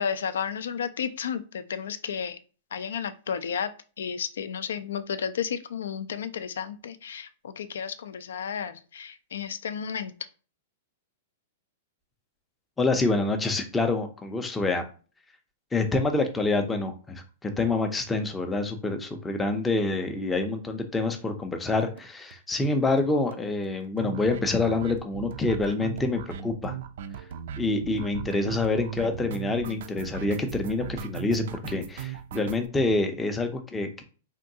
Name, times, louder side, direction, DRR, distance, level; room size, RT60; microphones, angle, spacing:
voice 1, 0.0-2.4 2.7-3.7 4.0-10.1, left 7 dB, 85° left, 11 dB, 0.3 m, -32 dB
voice 2, 12.8-14.8 15.7-26.8 27.6-34.0, left 3 dB, 10° left, 5 dB, 0.4 m, -27 dB
sound 1, 21.8-22.0 22.3-22.4 22.6-22.7 23.0-23.1 23.3-32.7, right 9 dB, 65° right, 0.3 m, -38 dB
3.5 x 2.2 x 2.7 m, 0.37 s
hypercardioid pair, 150°, 0 cm